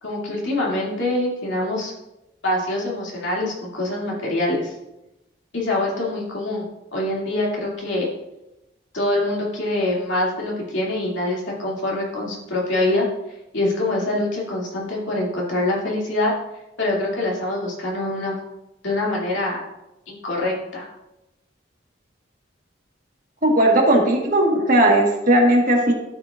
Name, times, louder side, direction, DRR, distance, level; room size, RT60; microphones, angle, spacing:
voice 1, 0.0-1.9 2.4-4.7 5.5-6.7 6.9-8.1 8.9-13.1 13.5-16.3 16.8-18.4 18.8-19.6 20.1-20.9, left 2 dB, 80° left, -4 dB, 2.6 m, -24 dB
voice 2, 23.4-25.9, right 1 dB, 45° right, 0 dB, 1.6 m, -17 dB
12.5 x 6.6 x 2.5 m, 0.92 s
head